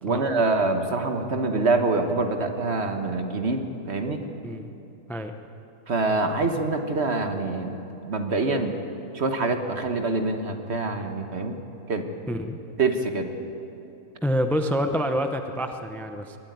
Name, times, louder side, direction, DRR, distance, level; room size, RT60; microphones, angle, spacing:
voice 1, 0.0-4.2 5.9-8.7 9.1-11.6 11.9-12.1 12.8-13.3, right 3 dB, 45° right, 6 dB, 1.5 m, -25 dB
voice 2, 12.3-12.6 14.2-16.4, equal, ahead, 7 dB, 0.5 m, -27 dB
22.0 x 13.0 x 9.4 m, 2.9 s
omnidirectional pair, 1.6 m